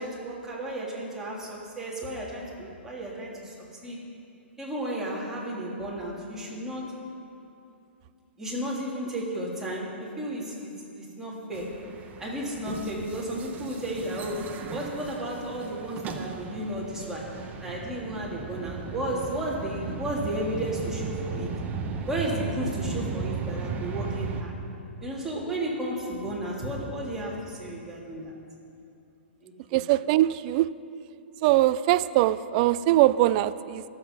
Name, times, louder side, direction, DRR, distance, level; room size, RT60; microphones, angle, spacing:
voice 1, 0.0-3.5 3.8-4.0 4.6-6.9 8.4-11.8 12.2-17.3 17.6-21.5 22.1-24.5 25.0-28.3 29.4-29.8, right 1 dB, 5° right, -5 dB, 3.2 m, -33 dB
sound 1, 11.5-24.4, right 5 dB, 25° right, 1.1 m, -36 dB
voice 2, 29.7-30.7 31.4-33.8, right 15 dB, 40° right, 16 dB, 0.4 m, -22 dB
24.0 x 8.1 x 5.4 m, 2.7 s
hypercardioid pair, 125°, 6 cm